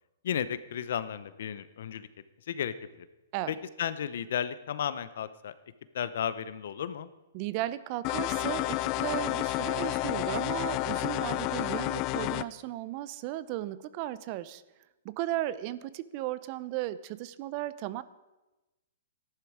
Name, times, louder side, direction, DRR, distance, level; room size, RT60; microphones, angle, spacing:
voice 1, 0.2-2.1 2.5-2.7 3.5-5.5 5.9-7.1, left 9 dB, 65° left, 14 dB, 0.7 m, -33 dB
voice 2, 7.3-14.6 15.0-18.0, right 14 dB, 40° right, 17 dB, 0.5 m, -35 dB
sound 1, 8.0-12.4, left 17 dB, 35° left, 0.4 m, -30 dB
14.0 x 11.0 x 4.8 m, 1.1 s
hypercardioid pair, 140°, 0 cm